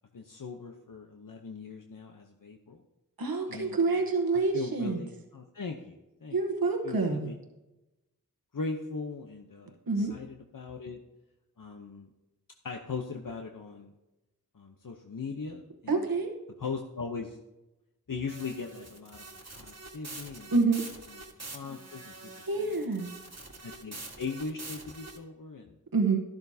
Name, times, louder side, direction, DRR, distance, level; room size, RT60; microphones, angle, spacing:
voice 1, 0.1-2.8 3.5-4.0 4.3-6.4 6.8-7.3 8.5-11.0 11.6-12.1 12.6-13.9 14.5-16.1 16.6-17.4 18.1-20.5 21.5-22.3 22.6-22.7 23.0-23.1 23.6-25.8, left 4 dB, 65° left, 3 dB, 0.9 m, -39 dB
voice 2, 3.2-5.0 6.3-7.3 9.9-10.1 15.9-16.4 20.5-20.8 22.5-23.1 25.9-26.2, right 4 dB, 85° right, 2 dB, 1.1 m, -27 dB
sound 1, 18.3-25.2, right 2 dB, 45° right, 1.6 m, -45 dB
12.5 x 12.0 x 2.8 m, 1.0 s
wide cardioid pair, 40°, 35 cm